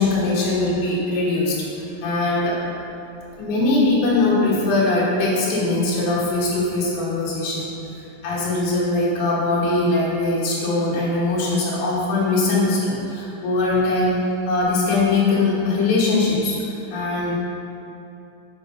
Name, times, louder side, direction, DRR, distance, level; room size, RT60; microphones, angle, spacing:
voice 1, 0.0-1.6 2.0-2.6 3.4-7.7 8.2-16.6 16.9-17.4, left 2 dB, 75° left, -7 dB, 3.2 m, -21 dB
7.3 x 5.4 x 5.4 m, 2.8 s
omnidirectional pair, 4.1 m